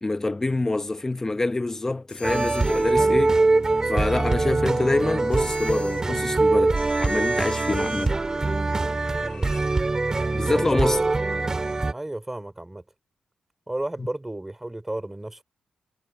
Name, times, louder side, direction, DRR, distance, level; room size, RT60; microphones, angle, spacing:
voice 1, 0.0-3.4 3.9-8.2 10.3-11.0 14.0-14.1, left 2 dB, 25° left, 0.8 m, -26 dB
sound 1, 2.1-2.9 5.3-6.0 6.8-8.1, left 7 dB, 65° left, 5.6 m, -44 dB
sound 2, 2.2-11.9, right 3 dB, 30° right, 1.8 m, -23 dB
sound 3, 5.4-9.6, left 5 dB, 50° left, 6.2 m, -53 dB
voice 2, 9.2-9.6 10.5-11.1 11.9-12.8 13.7-15.4, right 1 dB, 15° right, 3.2 m, -33 dB
cardioid pair, 60°, 2 cm